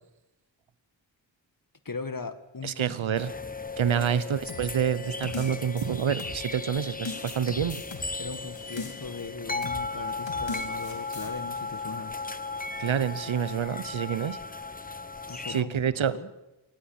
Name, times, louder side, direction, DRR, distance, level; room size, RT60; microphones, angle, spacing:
voice 1, 1.9-3.0 3.9-4.1 8.2-12.2 15.3-16.3, left 4 dB, 45° left, 12 dB, 1.9 m, -39 dB
voice 2, 2.6-3.3 3.8-7.8 12.8-14.4 15.5-16.2, right 8 dB, 85° right, 17 dB, 1.0 m, -27 dB
sound 1, 3.1-15.6, left 3 dB, 20° left, 1.1 m, -36 dB
sound 2, 4.5-6.6 7.1-9.2 9.6-9.9 10.3-11.3, left 3 dB, 70° left, 3.5 m, -39 dB
24.0 x 18.5 x 7.3 m, 1.0 s
cardioid pair, 40°, 46 cm